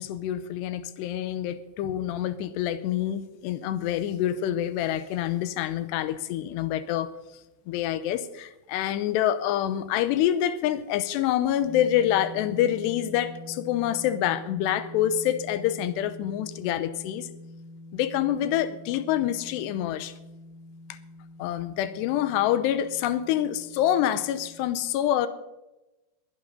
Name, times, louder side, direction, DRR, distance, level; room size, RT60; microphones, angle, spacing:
voice 1, 0.0-7.1 7.7-17.3 17.9-20.1 21.4-25.3, left 11 dB, 90° left, 2.8 m, -26 dB
sound 1, 11.6-24.7, left 1 dB, 5° left, 5.7 m, -45 dB
21.5 x 8.4 x 5.3 m
omnidirectional pair, 4.9 m